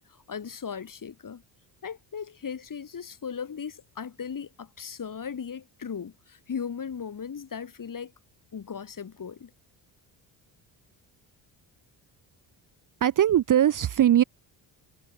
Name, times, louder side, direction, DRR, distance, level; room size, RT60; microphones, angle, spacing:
voice 1, 0.0-1.4 1.8-8.1 8.5-9.5, left 7 dB, 40° left, 2.1 m, -37 dB
voice 2, 13.0-14.2, right 11 dB, 40° right, 0.6 m, -20 dB
supercardioid pair, 55°, 49 cm